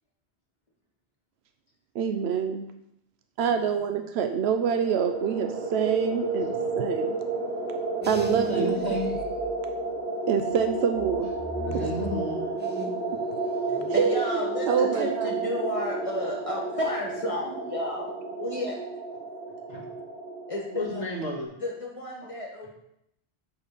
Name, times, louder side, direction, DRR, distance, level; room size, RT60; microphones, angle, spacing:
voice 1, 1.9-2.7 3.4-7.2 8.1-9.0 10.3-11.3 14.0-14.4 14.7-15.3, right 7 dB, 80° right, 7 dB, 0.9 m, -26 dB
sound 1, 4.5-21.4, right 3 dB, 55° right, 1.6 m, -31 dB
sound 2, 8.0-10.1 10.5-13.1 13.4-14.0, right 1 dB, 15° right, 0.5 m, -39 dB
voice 2, 8.5-9.1 11.6-12.8 13.1-13.2 19.7-19.8 20.7-21.5 22.2-22.3, left 1 dB, 65° left, -5 dB, 2.6 m, -32 dB
voice 3, 13.7-18.8 20.5-21.0 21.6-22.7, left 1 dB, 30° left, -2 dB, 1.9 m, -32 dB
9.0 x 4.1 x 6.1 m, 0.79 s
omnidirectional pair, 1.1 m